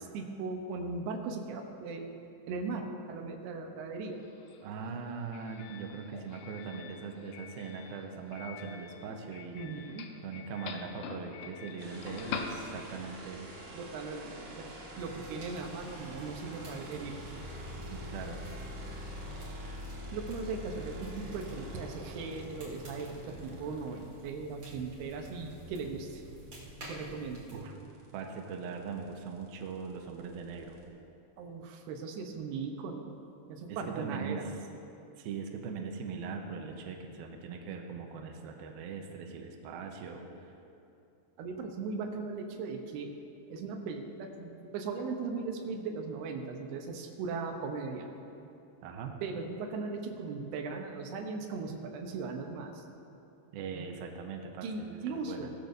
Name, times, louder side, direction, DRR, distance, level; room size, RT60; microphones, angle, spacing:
voice 1, 0.0-2.2 2.5-4.2 9.5-10.1 13.7-14.7 15.0-17.3 20.1-26.2 26.9-27.5 31.4-33.2 33.5-34.5 41.4-43.1 43.5-48.1 49.2-52.8 53.7-53.9 54.6-55.5, right 4 dB, 75° right, 3 dB, 2.6 m, -38 dB
Doorbell, 4.1-13.2, left 6 dB, 80° left, 2.6 m, -45 dB
voice 2, 4.6-9.6 10.2-13.5 17.9-18.4 27.5-27.7 28.1-30.8 33.7-34.5 35.2-40.5 48.8-49.2 53.5-55.5, right 5 dB, 90° right, 2 dB, 2.1 m, -40 dB
sound 1, 11.8-24.0 26.1-26.2 26.5-30.9, equal, 50° right, 2.8 m, -45 dB
sound 2, 15.0-27.6, equal, 35° right, 2.3 m, -49 dB
18.0 x 13.5 x 2.7 m, 2.8 s
omnidirectional pair, 5.5 m